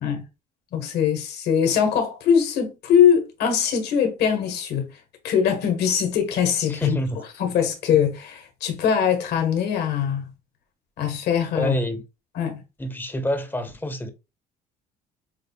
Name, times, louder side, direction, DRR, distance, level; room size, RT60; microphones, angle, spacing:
voice 1, 0.7-4.9 5.2-7.0 7.4-10.3 11.0-11.8 12.3-12.6, left 8 dB, 70° left, 1.4 m, -22 dB
voice 2, 6.7-7.2 11.5-12.0 12.8-14.1, equal, 10° left, 0.8 m, -27 dB
6.6 x 2.4 x 2.3 m
cardioid pair, 110°, 17 cm